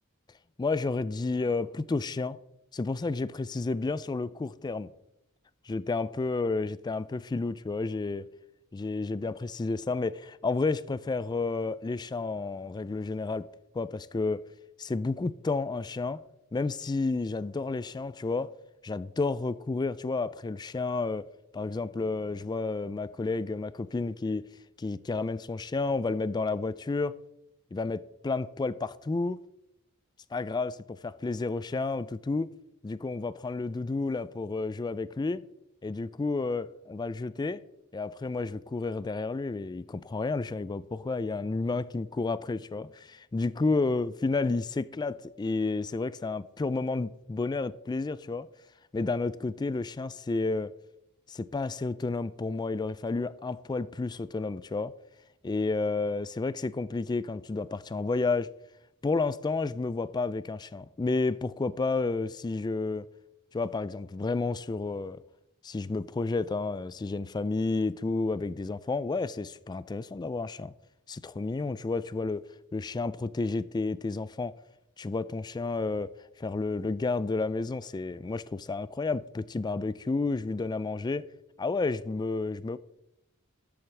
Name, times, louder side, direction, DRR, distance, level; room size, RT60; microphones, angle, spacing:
voice 1, 0.6-2.4 2.7-4.9 5.7-8.3 8.7-13.5 13.7-14.4 14.8-16.2 16.5-18.5 18.8-21.3 21.5-24.5 24.8-27.2 27.7-29.4 30.3-32.5 32.8-35.4 35.8-37.6 37.9-48.5 48.9-50.7 51.3-54.9 55.4-58.5 59.0-63.1 63.5-65.2 65.6-70.7 71.1-72.4 72.7-74.5 75.0-76.1 76.4-81.2 81.6-82.8, left 3 dB, 20° left, 0.3 m, -31 dB
13.0 x 8.7 x 3.3 m
head